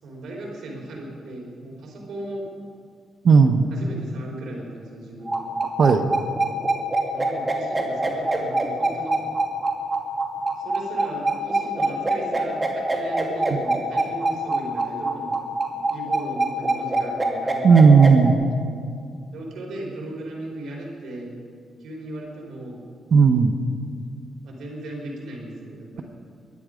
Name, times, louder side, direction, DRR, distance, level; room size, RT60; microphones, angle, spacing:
voice 1, 0.0-2.5 3.7-5.4 7.1-9.2 10.6-15.4 15.9-17.9 19.3-21.4 21.8-22.9 24.4-26.0, right 1 dB, 80° right, -1 dB, 4.1 m, -36 dB
voice 2, 3.2-3.7 5.8-6.0 17.6-18.4 23.1-23.5, right 5 dB, 55° right, 7 dB, 1.1 m, -14 dB
sound 1, 5.3-18.3, right 2 dB, 15° right, 2.5 m, -24 dB
23.0 x 10.5 x 5.1 m, 2.2 s
cardioid pair, 95°, 0 cm